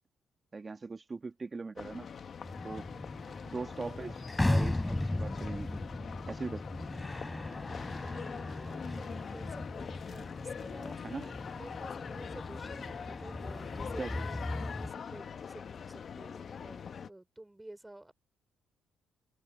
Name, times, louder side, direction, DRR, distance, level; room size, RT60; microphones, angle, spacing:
voice 1, 0.5-2.1 2.6-2.9 3.4-5.8 6.3-6.6 11.0-11.3 14.0-14.2, right 4 dB, 30° right, 1.5 m, -40 dB
sound 1, 1.8-17.1, left 6 dB, 50° left, 1.1 m, -43 dB
sound 2, 2.4-14.9, left 1 dB, 10° left, 3.2 m, -37 dB
voice 2, 8.0-18.1, right 1 dB, 10° right, 4.3 m, -52 dB
cardioid pair, 90°, 0 cm